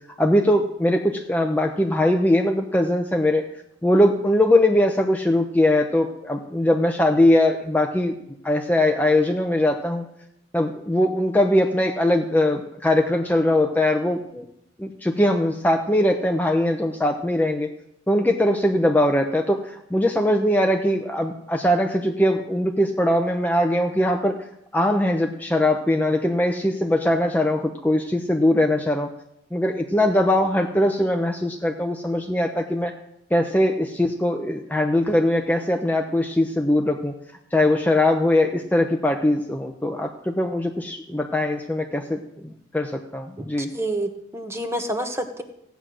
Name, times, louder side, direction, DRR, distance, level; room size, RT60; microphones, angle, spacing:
voice 1, 0.2-3.5 3.8-8.1 8.4-10.1 10.5-14.5 14.8-17.7 18.1-24.4 24.7-29.1 29.5-32.9 33.3-37.1 37.5-43.7, left 1 dB, 10° left, 3 dB, 0.7 m, -21 dB
voice 2, 43.7-45.4, right 1 dB, 15° right, 6 dB, 1.2 m, -28 dB
16.0 x 9.3 x 6.2 m, 0.78 s
head